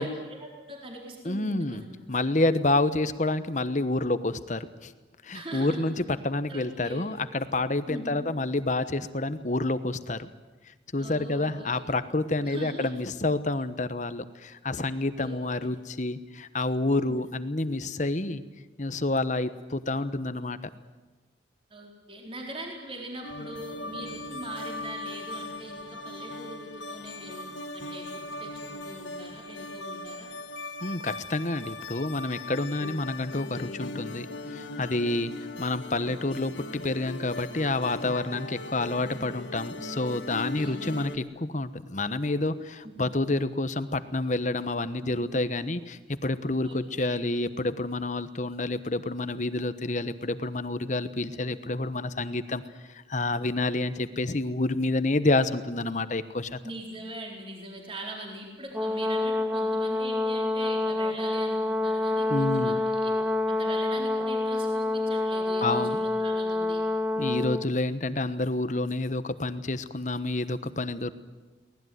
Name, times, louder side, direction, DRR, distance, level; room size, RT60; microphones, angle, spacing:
voice 1, 0.0-1.9 5.3-5.8 6.5-7.1 7.9-8.2 11.0-11.8 12.4-12.9 15.2-15.7 17.1-17.2 21.7-30.3 40.5-41.0 42.8-43.2 45.0-45.3 46.6-47.2 56.6-63.1 63.5-66.8, right 1 dB, 30° right, 0 dB, 4.2 m, -42 dB
voice 2, 1.2-1.8 2.1-4.9 5.2-10.3 10.9-18.4 18.8-20.6 30.8-34.3 34.5-35.3 35.6-52.6 52.9-56.6 62.3-62.8 65.6-66.0 67.2-71.1, left 2 dB, 40° left, 12 dB, 1.1 m, -28 dB
sound 1, 23.2-41.2, left 2 dB, 80° left, 1.8 m, -39 dB
Brass instrument, 58.7-67.7, left 2 dB, 5° right, 0.9 m, -27 dB
24.0 x 19.0 x 9.5 m, 1.2 s
head